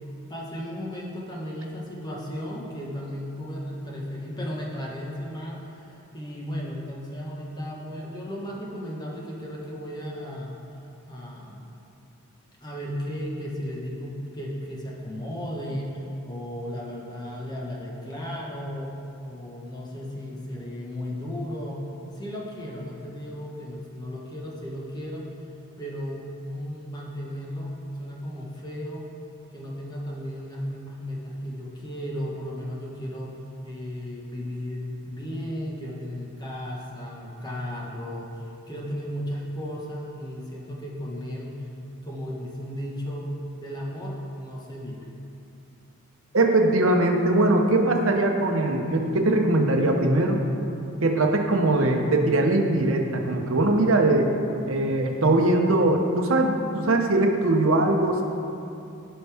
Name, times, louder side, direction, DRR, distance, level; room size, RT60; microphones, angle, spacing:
voice 1, 0.3-10.5 11.1-11.6 12.6-19.0 19.3-21.9 22.1-25.2 25.8-29.0 29.5-33.4 33.6-41.6 42.0-45.1, equal, 20° left, -3 dB, 1.4 m, -35 dB
voice 2, 46.3-50.4 51.0-54.3 54.7-58.2, right 2 dB, 65° right, 2 dB, 1.0 m, -21 dB
15.5 x 5.5 x 3.5 m, 2.7 s
head